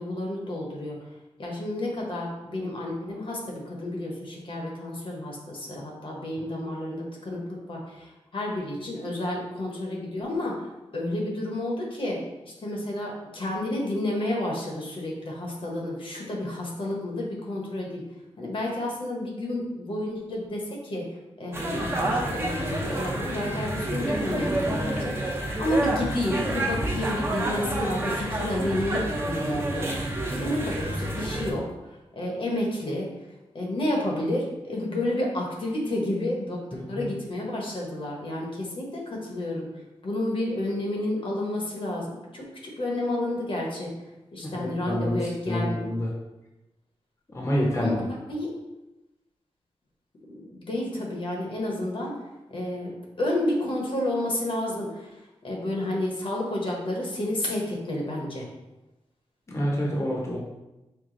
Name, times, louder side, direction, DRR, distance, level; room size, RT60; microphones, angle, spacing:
voice 1, 0.0-18.0 18.4-33.3 33.5-36.6 36.9-43.9 44.3-45.8 47.8-48.0 48.3-48.5 50.3-52.2 52.5-58.5, left 1 dB, 55° left, -1 dB, 0.9 m, -31 dB
sound 1, 21.5-31.5, right 1 dB, 20° right, 0.7 m, -29 dB
sound 2, 22.1-31.3, left 2 dB, 80° right, 1.1 m, -42 dB
voice 2, 36.7-37.1 44.5-45.2 45.5-46.1 47.3-47.9 59.5-60.4, equal, 30° left, -3 dB, 0.8 m, -27 dB
4.7 x 2.2 x 3.8 m, 1.0 s
wide cardioid pair, 110°, 11 cm